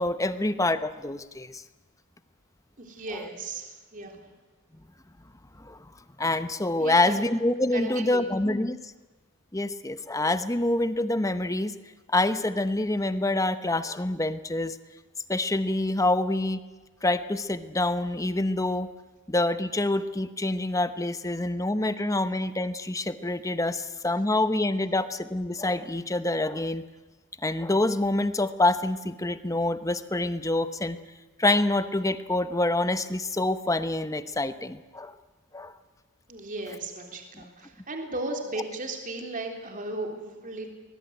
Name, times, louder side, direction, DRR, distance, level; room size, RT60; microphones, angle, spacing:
voice 1, 0.0-1.6 3.1-3.2 5.6-5.8 6.2-8.8 9.5-11.7 12.1-14.8 15.3-16.6 17.0-18.9 19.3-26.8 27.4-31.0 31.4-35.1 35.5-35.7 37.4-37.5, left 2 dB, 15° left, 11 dB, 1.0 m, -26 dB
voice 2, 2.8-4.2 6.8-7.2 7.7-8.2 36.3-40.7, right 2 dB, 35° right, 3 dB, 3.5 m, -36 dB
23.0 x 21.0 x 9.3 m, 1.2 s
head